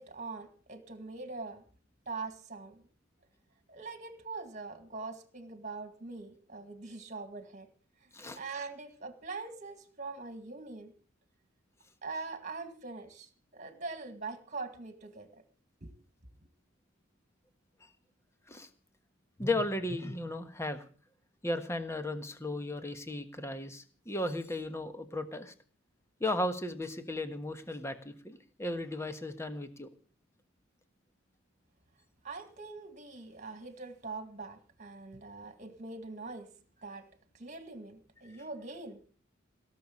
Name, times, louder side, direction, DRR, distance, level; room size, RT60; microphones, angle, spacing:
voice 1, 0.0-1.6 2.1-2.8 3.7-7.7 8.4-10.9 12.0-15.4 15.8-15.9 32.2-36.5 36.8-37.1 37.3-39.0, right 3 dB, 40° right, 8 dB, 2.1 m, -43 dB
voice 2, 19.4-20.8 21.4-25.5 26.2-29.9 38.3-38.4, left 1 dB, 15° left, 8 dB, 1.4 m, -35 dB
17.5 x 6.8 x 8.6 m, 0.42 s
head